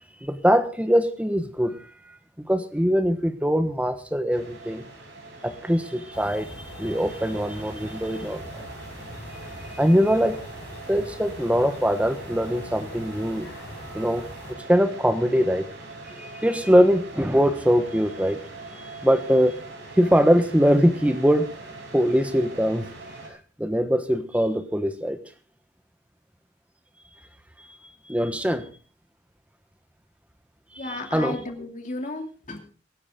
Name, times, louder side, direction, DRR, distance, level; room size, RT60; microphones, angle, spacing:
voice 1, 0.2-1.9 2.4-4.8 5.4-8.6 9.7-10.4 10.9-13.5 13.9-14.2 14.7-15.6 16.1-18.4 18.8-19.6 19.9-21.5 21.9-22.9 23.3-25.2 28.1-28.7 30.7-31.4, equal, 5° right, 9 dB, 1.2 m, -22 dB
sound 1, 4.3-23.3, right 3 dB, 60° right, 5.6 m, -42 dB
sound 2, 6.1-14.5, left 1 dB, 90° left, 6.6 m, -42 dB
voice 2, 30.8-32.6, left 2 dB, 40° left, 3 dB, 2.8 m, -34 dB
23.5 x 9.9 x 3.8 m, 0.37 s
head